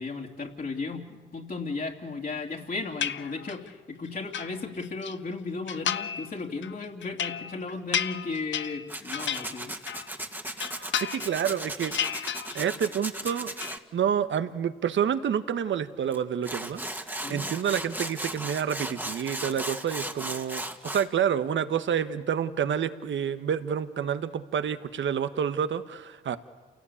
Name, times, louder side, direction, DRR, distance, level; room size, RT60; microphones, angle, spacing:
voice 1, 0.0-9.7 17.2-17.4, left 3 dB, 45° left, -1 dB, 2.9 m, -35 dB
sound 1, 3.0-3.7 4.1-5.1 5.7-6.3 6.6-10.1 10.4-11.5 11.8-12.9 13.2-13.8, left 9 dB, 65° left, 0.8 m, -33 dB
Tools, 8.9-13.8 16.1-16.2 16.4-21.1, right 1 dB, 10° right, 1.9 m, -36 dB
voice 2, 10.8-12.0 12.5-13.5 13.9-16.8 17.1-26.4, right 8 dB, 65° right, 12 dB, 1.2 m, -28 dB
28.5 x 18.0 x 8.6 m, 1.4 s
supercardioid pair, 60°, 21 cm